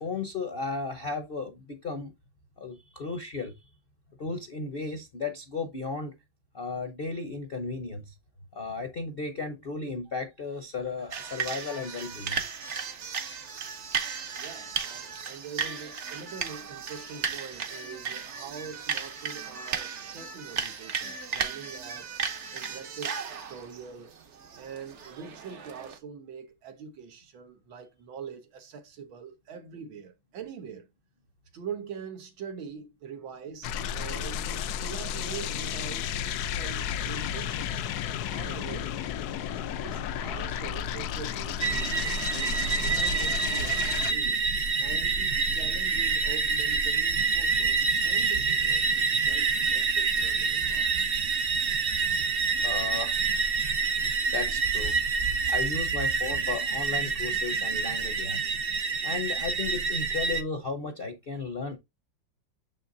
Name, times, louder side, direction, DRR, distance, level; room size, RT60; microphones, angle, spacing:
voice 1, 0.0-2.1 2.6-3.5 4.2-6.1 6.5-8.1 8.5-12.4 52.6-53.2 54.3-55.0 55.5-58.5 59.0-61.8, left 4 dB, 40° left, 0.8 m, -34 dB
sound 1, 11.1-26.0, right 6 dB, 50° right, 0.9 m, -35 dB
voice 2, 14.4-22.1 22.5-24.2 24.6-30.9 31.5-37.8 38.3-39.0 39.8-42.6 42.8-44.5 44.8-51.2 51.5-51.6, right 6 dB, 90° right, 2.0 m, -43 dB
sound 2, 33.6-44.1, left 9 dB, 70° left, 1.0 m, -33 dB
sound 3, 41.6-60.4, right 5 dB, 65° right, 0.5 m, -27 dB
7.0 x 5.7 x 2.6 m
omnidirectional pair, 2.1 m